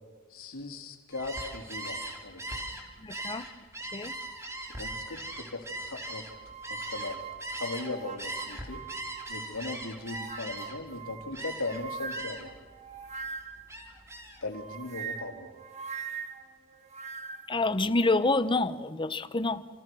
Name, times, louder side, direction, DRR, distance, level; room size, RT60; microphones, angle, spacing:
voice 1, 0.3-2.6 4.7-6.3 6.7-7.2 7.5-8.8 9.3-12.5 14.4-15.5, left 2 dB, 75° left, 3 dB, 3.6 m, -38 dB
Gull seagull, 1.1-7.9 8.2-10.9 11.3-11.8 12.1-12.6 13.0-14.4, right 1 dB, 15° right, 3.2 m, -39 dB
voice 2, 3.0-3.4 3.9-4.1 17.5-19.7, left 2 dB, 25° left, 12 dB, 0.9 m, -27 dB
sound 1, 6.3-9.6 10.0-13.7 14.5-17.6, right 6 dB, 35° right, 1.3 m, -42 dB
29.0 x 28.5 x 6.3 m, 1.5 s
head